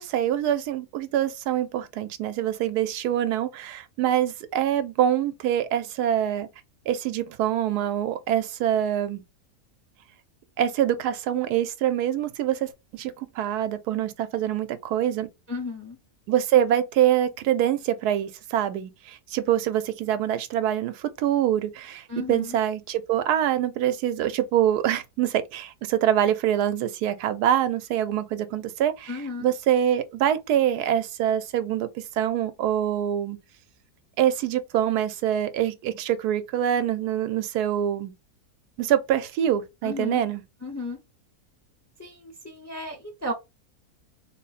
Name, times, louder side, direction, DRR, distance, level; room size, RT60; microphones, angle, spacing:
voice 1, 0.0-6.5 6.9-9.2 10.6-15.3 16.3-33.4 34.2-38.1 38.8-40.4, right 11 dB, 85° right, 1.1 m, -25 dB
voice 2, 15.5-16.0 22.1-22.6 29.1-29.5 39.8-40.2 40.6-41.0 42.0-43.3, left 2 dB, 20° left, 0.4 m, -34 dB
3.7 x 2.0 x 4.0 m
omnidirectional pair, 1.7 m